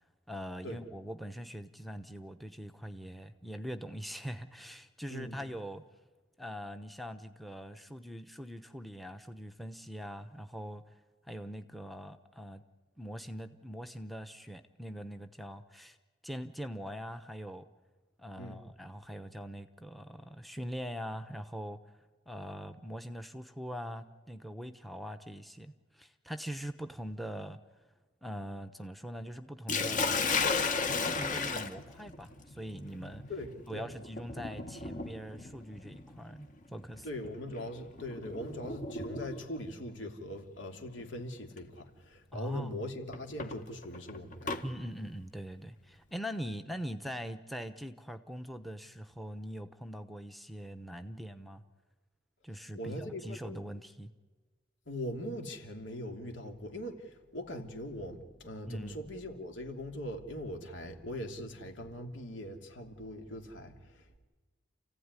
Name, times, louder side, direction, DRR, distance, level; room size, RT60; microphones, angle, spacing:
voice 1, 0.3-5.8 6.4-10.8 11.3-12.6 13.0-16.0 16.2-17.6 18.2-21.8 22.3-27.6 28.2-30.2 31.1-33.2 33.7-37.1 42.3-42.8 44.6-51.6 52.4-54.1 58.7-59.0, equal, ahead, 10 dB, 0.9 m, -42 dB
voice 2, 5.1-5.4 18.4-18.6 33.3-33.8 37.0-44.6 52.7-53.6 54.9-64.2, left 1 dB, 75° left, 3 dB, 3.1 m, -41 dB
Sink (filling or washing), 29.7-39.6 40.7-41.1 41.6-41.7 43.1-44.6, left 4 dB, 45° left, 1.8 m, -35 dB
29.5 x 16.0 x 9.8 m, 1.4 s
head